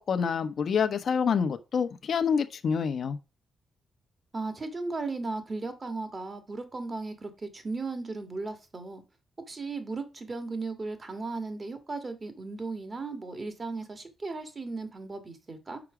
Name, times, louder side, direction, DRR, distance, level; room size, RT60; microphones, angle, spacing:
voice 1, 0.1-3.2, left 6 dB, 60° left, 0.8 m, -27 dB
voice 2, 4.3-9.0 9.5-15.8, right 3 dB, 35° right, 1.8 m, -36 dB
6.0 x 4.8 x 4.9 m
supercardioid pair, 60°, 0 cm